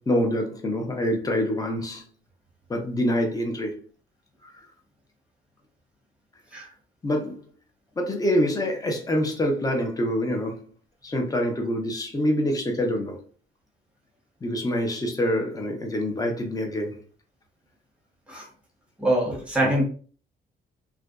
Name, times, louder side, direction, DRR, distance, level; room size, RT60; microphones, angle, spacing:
voice 1, 0.1-2.0 2.7-3.8 7.0-7.4 8.0-10.6 11.0-13.2 14.4-17.0 19.6-19.7, equal, 20° left, 2 dB, 0.6 m, -26 dB
voice 2, 19.0-19.8, right 1 dB, 5° right, -1 dB, 0.9 m, -23 dB
2.5 x 2.2 x 2.3 m, 0.42 s
cardioid pair, 90°, 20 cm